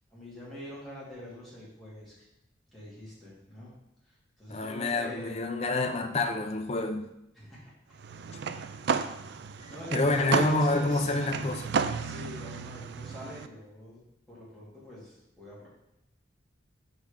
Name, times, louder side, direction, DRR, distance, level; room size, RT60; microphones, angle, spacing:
voice 1, 0.1-2.3 2.7-3.7 4.0-5.3 7.3-7.7 9.2-9.3 9.7-11.1 12.0-14.0 14.3-15.7, left 1 dB, ahead, -9 dB, 2.4 m, -45 dB
voice 2, 4.5-7.1 8.3-8.4 9.9-11.7, left 2 dB, 35° left, 6 dB, 0.5 m, -28 dB
sound 1, 8.0-13.5, right 5 dB, 60° right, 0.3 m, -33 dB
6.1 x 3.8 x 5.1 m, 0.86 s
head